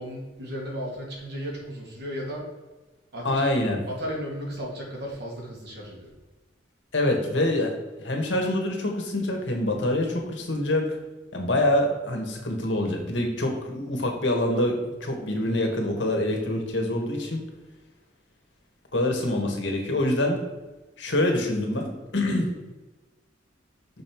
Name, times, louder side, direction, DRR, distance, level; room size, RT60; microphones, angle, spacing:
voice 1, 0.0-2.4 3.1-3.4 3.9-6.1, equal, 65° right, -2 dB, 2.4 m, -35 dB
voice 2, 3.2-3.8 6.9-7.7 8.0-10.8 11.3-17.4 18.9-20.4 21.0-22.5, left 1 dB, 75° left, 2 dB, 1.6 m, -25 dB
6.4 x 5.4 x 4.6 m, 1.2 s
head